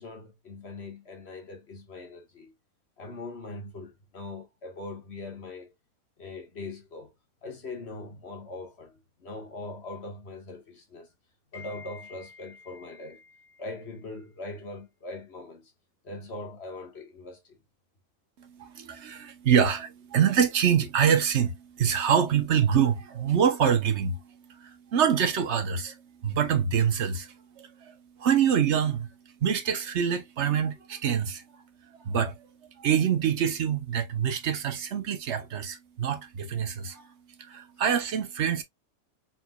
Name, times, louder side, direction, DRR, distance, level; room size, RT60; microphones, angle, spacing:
voice 1, 0.0-2.5 3.0-5.7 6.2-7.1 7.4-11.1 11.5-15.7 16.0-17.6, left 2 dB, 45° left, 1.7 m, -41 dB
voice 2, 18.4-29.1 29.4-31.4 31.9-32.5 32.8-37.1 37.4-38.6, right 8 dB, 55° right, 1.1 m, -26 dB
4.4 x 3.9 x 2.3 m
omnidirectional pair, 1.5 m